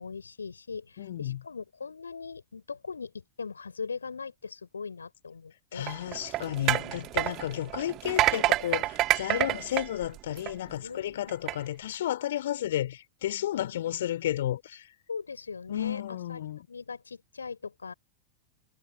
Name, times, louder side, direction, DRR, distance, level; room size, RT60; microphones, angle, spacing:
voice 1, 0.0-5.9 6.7-7.1 9.3-9.5 10.8-11.4 13.5-13.9 15.1-16.4 16.7-17.9, left 5 dB, 75° left, 4.1 m, -40 dB
voice 2, 1.0-1.4 5.7-14.9 15.7-16.7, left 12 dB, 60° left, 3.9 m, -32 dB
sound 1, 5.8-10.7 11.3-11.5, right 16 dB, 35° right, 2.6 m, -28 dB
figure-of-eight pair, 90°, 0 cm